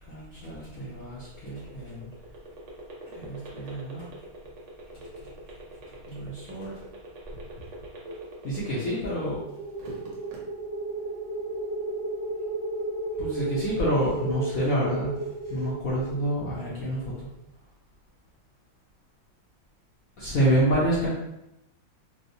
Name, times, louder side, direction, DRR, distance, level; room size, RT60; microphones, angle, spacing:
voice 1, 0.1-2.1 3.0-4.1 6.1-6.7 8.4-9.4 13.2-15.1 15.5-17.3 20.2-21.1, right 1 dB, 60° left, -7 dB, 0.9 m, -28 dB
sound 1, 1.1-9.2 9.6-10.4, right 2 dB, 80° right, 1.7 m, -43 dB
sound 2, 9.3-17.3, right 2 dB, 50° right, 0.5 m, -34 dB
4.4 x 2.0 x 2.6 m, 0.87 s
omnidirectional pair, 2.2 m